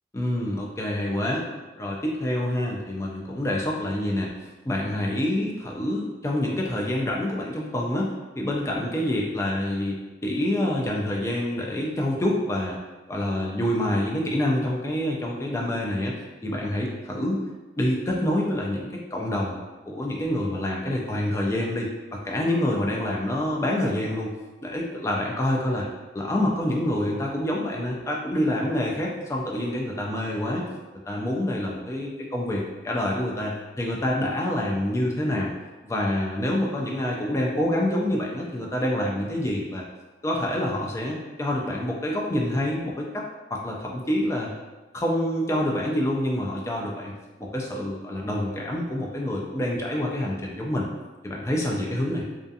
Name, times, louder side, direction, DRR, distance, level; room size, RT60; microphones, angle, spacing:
voice 1, 0.1-1.5 1.8-4.3 4.7-12.8 13.1-16.1 16.4-17.4 17.8-19.6 19.9-24.3 24.6-25.8 26.1-30.7 31.1-35.5 35.8-39.8 40.2-43.2 43.5-44.5 44.9-47.1 47.4-50.9 51.2-52.3, left 1 dB, 15° left, -2 dB, 0.3 m, -27 dB
2.4 x 2.3 x 2.6 m, 1.2 s
head